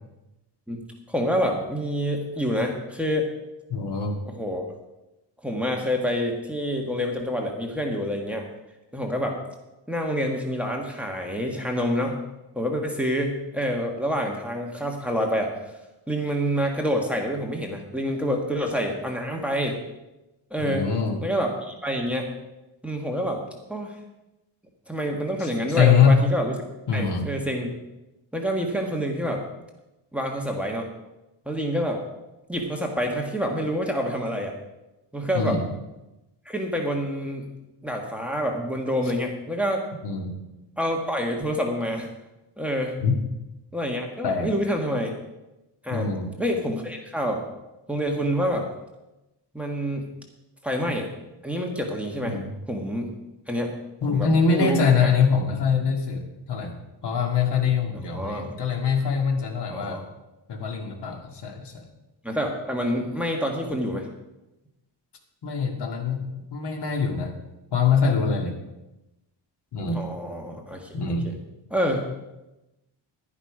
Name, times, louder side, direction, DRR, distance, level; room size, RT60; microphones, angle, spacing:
voice 1, 1.1-3.3 4.2-4.8 5.4-8.5 8.9-9.4 9.9-12.1 12.5-15.5 16.1-19.8 20.5-20.9 21.2-22.3 22.8-23.4 23.7-23.9 24.9-26.5 26.9-27.7 28.3-29.4 30.1-30.9 31.4-32.0 32.5-34.6 35.1-35.6 36.4-37.5 37.8-39.8 40.8-42.1 42.6-43.0 43.7-45.1 45.8-46.1 46.4-47.4 47.9-48.6 49.5-50.1 50.6-51.1 51.4-52.4 52.7-53.1 53.5-53.7 54.1-55.1 58.1-58.5 59.7-60.0 62.2-64.1 69.9-70.9 71.2-71.3 71.7-72.0, equal, 5° right, 1 dB, 1.5 m, -27 dB
voice 2, 3.7-4.2 20.6-21.2 25.4-26.2 26.9-27.3 35.3-35.6 40.0-40.3 43.0-43.1 44.2-44.5 45.9-46.3 52.2-52.5 54.0-56.8 57.0-60.0 60.5-61.9 65.4-67.3 67.7-68.6 69.7-70.0 70.9-71.3, left 6 dB, 55° left, 2 dB, 2.0 m, -23 dB
11.0 x 10.5 x 4.9 m, 0.98 s
wide cardioid pair, 145°, 47 cm